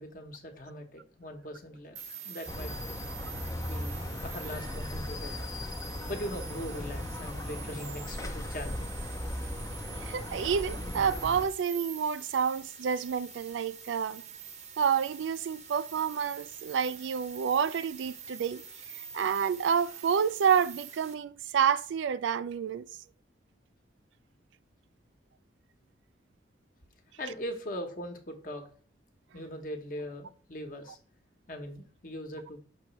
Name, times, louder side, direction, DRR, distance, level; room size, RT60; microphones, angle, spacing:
voice 1, 0.0-3.0 3.6-5.5 6.1-8.9 27.2-28.6 29.3-31.0 31.5-32.6, equal, 45° left, 1.1 m, -40 dB
sound 1, 2.0-21.1, right 6 dB, 40° right, 0.8 m, -46 dB
sound 2, 2.5-11.4, left 1 dB, 15° left, 0.5 m, -37 dB
voice 2, 10.0-14.2 14.8-18.6 18.9-22.8, right 7 dB, 85° right, 0.3 m, -29 dB
6.1 x 3.0 x 5.5 m
head